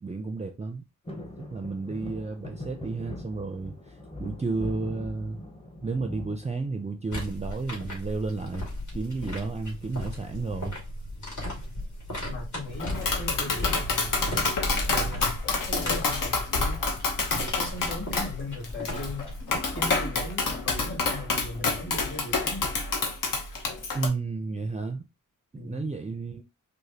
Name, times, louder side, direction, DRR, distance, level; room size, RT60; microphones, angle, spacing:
voice 1, 0.0-0.8 1.5-5.4 5.8-10.8 23.9-25.0 25.5-26.4, right 3 dB, 20° right, 0.5 m, -32 dB
sound 1, 1.1-7.2 7.7-8.3 9.6-10.0 10.2-10.3 10.6-10.9 11.7-12.7 13.1-13.2, left 2 dB, 15° left, 0.9 m, -42 dB
sound 2, 7.1-19.6, left 1 dB, 60° left, 2.0 m, -36 dB
voice 2, 12.3-14.2 14.9-16.8 17.4-19.3 19.7-22.8 25.5-25.9, left 2 dB, 35° left, 2.2 m, -38 dB
Tap, 12.8-24.1, left 3 dB, 75° left, 1.0 m, -28 dB
5.0 x 2.1 x 2.8 m
cardioid pair, 70°, 33 cm